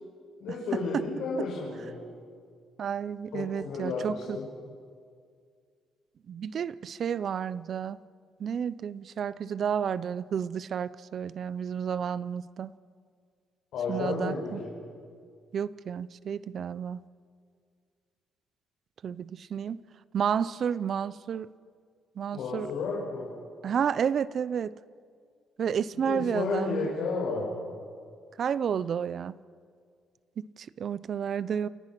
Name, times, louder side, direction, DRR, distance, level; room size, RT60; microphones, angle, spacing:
voice 1, 0.4-2.0 3.3-4.5 13.7-14.7 22.3-23.3 25.9-27.6, left 4 dB, 65° left, -4 dB, 5.7 m, -32 dB
voice 2, 2.8-4.4 6.3-8.0 8.4-12.7 13.9-14.6 15.5-17.0 19.0-19.8 20.1-21.5 22.2-22.7 23.6-24.7 25.6-26.9 28.4-29.3 30.4-31.7, right 7 dB, 40° right, 18 dB, 0.5 m, -31 dB
29.0 x 25.5 x 6.0 m, 2.1 s
cardioid pair, 175°, 0 cm